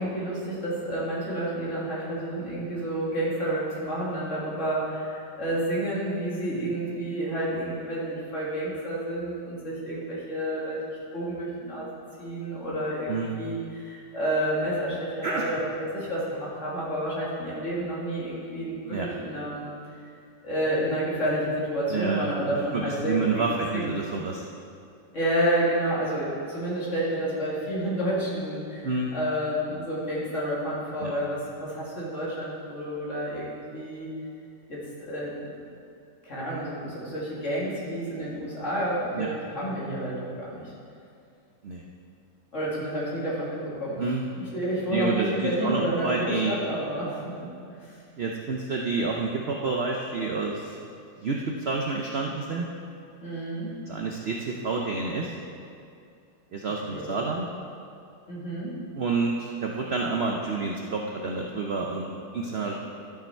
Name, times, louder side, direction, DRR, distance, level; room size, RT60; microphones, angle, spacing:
voice 1, 0.0-19.7 20.4-23.4 23.7-23.9 25.1-34.1 34.7-35.6 36.2-40.7 42.5-44.0 44.3-48.0 53.2-53.7 56.9-57.1 58.3-58.8, right 1 dB, 40° left, -7 dB, 2.5 m, -30 dB
voice 2, 21.9-24.4 28.8-29.1 31.0-31.1 39.1-39.3 41.6-41.8 44.0-44.2 44.9-46.5 48.2-50.8 51.2-52.7 53.9-55.4 56.5-57.5 59.0-62.8, right 4 dB, 75° right, 0 dB, 0.5 m, -29 dB
13.0 x 5.8 x 4.4 m, 2.4 s
omnidirectional pair, 2.0 m